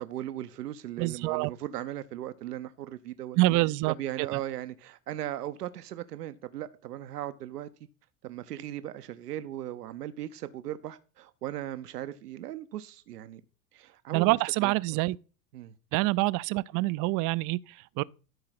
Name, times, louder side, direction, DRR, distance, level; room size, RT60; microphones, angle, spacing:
voice 1, 0.0-3.4 4.0-7.7 8.2-13.4 13.7-14.8 15.5-15.7, right 12 dB, 90° right, 0.9 m, -38 dB
voice 2, 1.0-1.5 3.4-4.4 14.1-15.2 15.9-18.0, right 21 dB, 45° right, 0.5 m, -26 dB
13.0 x 4.8 x 5.9 m
hypercardioid pair, 95°, 46 cm